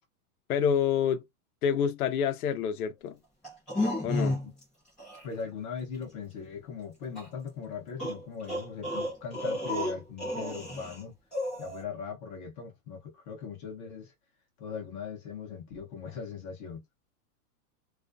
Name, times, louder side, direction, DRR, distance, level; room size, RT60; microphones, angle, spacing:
voice 1, 0.5-1.3 1.6-3.2 4.0-4.4, left 8 dB, 75° left, 0.7 m, -27 dB
sound 1, 3.4-4.6 5.0-5.2 7.1-7.3 8.0-11.0 11.3-11.8, left 1 dB, ahead, 0.4 m, -32 dB
voice 2, 5.2-11.1 11.6-14.1 14.6-16.8, left 6 dB, 30° left, 0.7 m, -39 dB
2.4 x 2.1 x 2.4 m
supercardioid pair, 155°, 45 cm